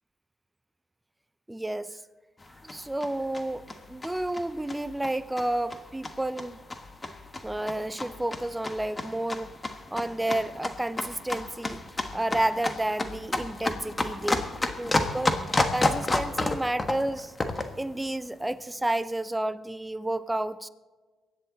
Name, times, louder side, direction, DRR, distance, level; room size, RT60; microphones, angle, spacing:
voice 1, 1.5-2.0 2.6-6.6 7.4-9.6 9.9-11.8 12.1-15.4 15.7-17.3 17.8-20.7, right 1 dB, 10° right, 0.6 m, -31 dB
sound 1, 2.4-17.8, left 2 dB, 20° left, 1.3 m, -31 dB
23.5 x 9.9 x 4.0 m
cardioid pair, 90°, 0 cm